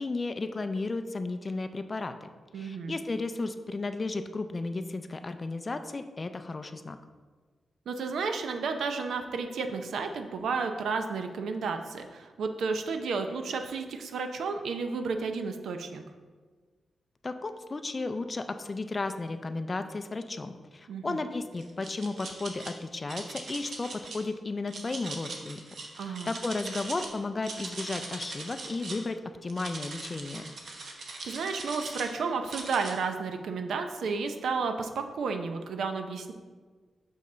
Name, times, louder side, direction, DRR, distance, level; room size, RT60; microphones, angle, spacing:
voice 1, 0.0-2.3 2.5-7.0 17.2-25.6 26.0-30.4, left 3 dB, 30° left, 9 dB, 0.4 m, -34 dB
voice 2, 2.5-2.9 7.9-16.0 20.9-21.2 26.0-26.3 31.2-36.3, right 4 dB, 85° right, 6 dB, 0.6 m, -32 dB
sound 1, 21.6-22.7 23.1-24.2 24.7-27.1 27.4-29.0 29.5-32.1 32.5-32.9, right 3 dB, 65° right, 1.0 m, -40 dB
6.4 x 5.4 x 3.9 m, 1.4 s
wide cardioid pair, 135°, 0 cm